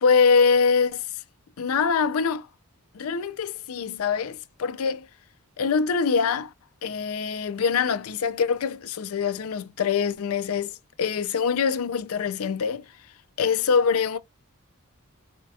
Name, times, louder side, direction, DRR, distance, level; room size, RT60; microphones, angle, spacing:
voice 1, 0.0-1.2 1.6-2.5 2.9-5.1 5.6-6.5 6.8-12.9 13.4-14.2, left 5 dB, 70° left, 0.4 m, -24 dB
4.3 x 2.7 x 2.3 m
head